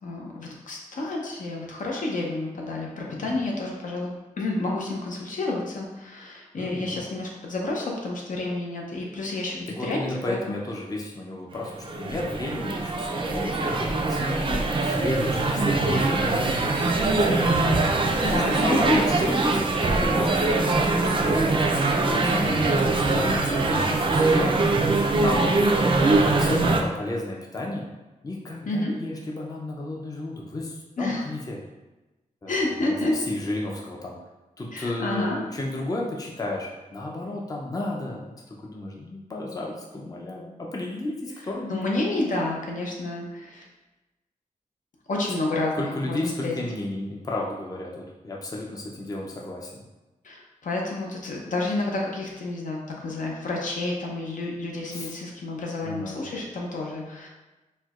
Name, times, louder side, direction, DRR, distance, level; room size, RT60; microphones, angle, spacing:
voice 1, 0.0-10.6 18.2-19.0 22.3-22.5 28.7-28.9 31.0-31.2 32.5-33.2 34.7-35.4 41.7-43.7 45.1-46.5 50.2-57.3, left 2 dB, 70° left, -2 dB, 0.6 m, -29 dB
voice 2, 3.1-3.4 6.5-7.0 9.7-17.5 18.2-24.6 25.2-25.5 26.3-27.8 28.2-31.6 32.4-33.0 33.3-34.2 34.6-41.9 45.7-49.8 54.9-55.1 55.8-56.2, left 1 dB, 25° left, -2 dB, 0.5 m, -33 dB
sound 1, 11.5-26.8, right 2 dB, 40° right, 0.4 m, -23 dB
4.3 x 2.2 x 2.3 m, 1.1 s
wide cardioid pair, 110°, 14 cm